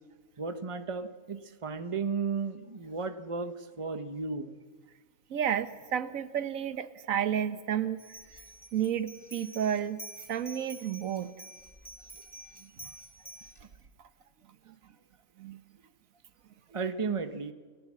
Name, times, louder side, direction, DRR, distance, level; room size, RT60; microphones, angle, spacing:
voice 1, 0.4-4.6 16.7-17.5, right 4 dB, 25° right, 9 dB, 1.1 m, -34 dB
voice 2, 5.3-8.0 8.7-10.0 10.3-11.4 12.6-12.9 14.7-14.8 15.4-15.6, right 9 dB, 80° right, 12 dB, 1.4 m, -31 dB
sound 1, 8.0-13.6, right 1 dB, 15° left, 2.9 m, -49 dB
29.5 x 18.0 x 7.5 m, 1.4 s
omnidirectional pair, 1.4 m